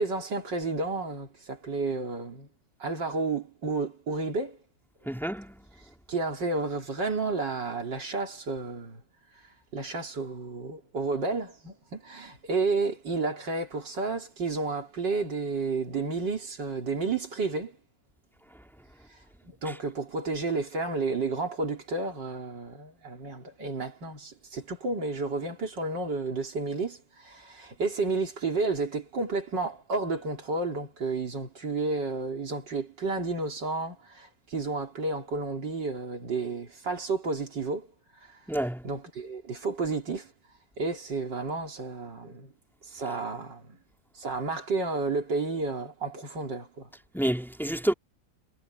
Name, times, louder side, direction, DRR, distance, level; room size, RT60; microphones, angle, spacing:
voice 1, 0.0-2.5 2.8-4.6 6.1-9.0 9.7-17.8 19.4-37.9 38.3-38.4 38.8-40.3 40.8-42.5 42.9-43.8 44.2-46.9, right 3 dB, 75° right, 3.9 m, -31 dB
voice 2, 5.1-5.5 38.5-38.8 47.1-47.9, right 1 dB, ahead, 3.1 m, -28 dB
omnidirectional pair, 2.0 m